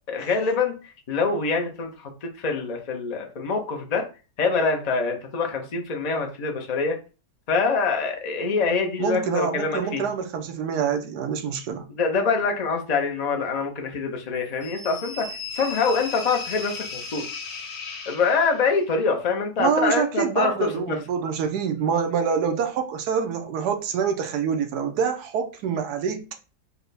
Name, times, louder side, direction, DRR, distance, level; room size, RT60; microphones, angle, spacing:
voice 1, 0.1-0.8 1.1-4.1 4.4-7.0 7.5-10.1 12.0-15.3 15.5-17.2 18.1-21.0, left 4 dB, 65° left, 0.4 m, -25 dB
voice 2, 9.0-11.9 19.6-26.2, right 6 dB, 75° right, 1.2 m, -26 dB
sound 1, 14.6-18.8, left 4 dB, 90° left, 1.5 m, -36 dB
4.2 x 2.2 x 4.0 m
omnidirectional pair, 1.8 m